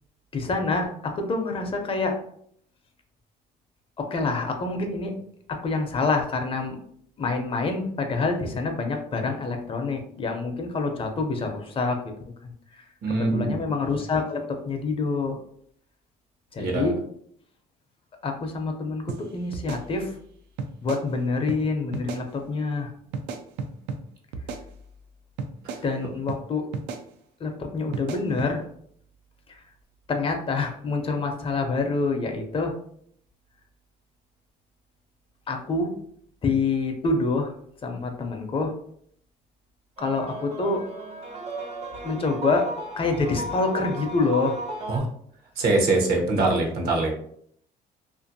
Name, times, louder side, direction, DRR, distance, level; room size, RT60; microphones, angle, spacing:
voice 1, 0.3-2.2 4.0-5.2 5.5-6.8 7.2-12.1 12.4-12.9 13.3-15.4 16.5-17.0 18.2-20.2 20.8-22.9 25.8-26.7 27.4-28.7 29.5-29.6 30.1-32.7 35.5-36.0 36.4-37.5 37.8-38.7 40.0-40.8 42.0-42.7 43.0-44.5, left 3 dB, 35° left, 4 dB, 0.5 m, -26 dB
voice 2, 13.0-13.6 16.6-16.9 44.9-45.1 45.6-47.1, right 2 dB, 65° right, 0 dB, 0.8 m, -23 dB
sound 1, 19.1-19.2 19.5-20.3 20.6-21.0 21.5-21.6 21.9-22.2 23.1-24.0 24.3-25.1 25.4-25.8 26.3-26.4 26.7-27.0 27.9-28.5, right 4 dB, 90° right, 0.4 m, -34 dB
sound 2, 40.0-45.0, right 1 dB, 35° right, 0.5 m, -35 dB
2.5 x 2.5 x 2.6 m, 0.65 s
cardioid pair, 110°, 17 cm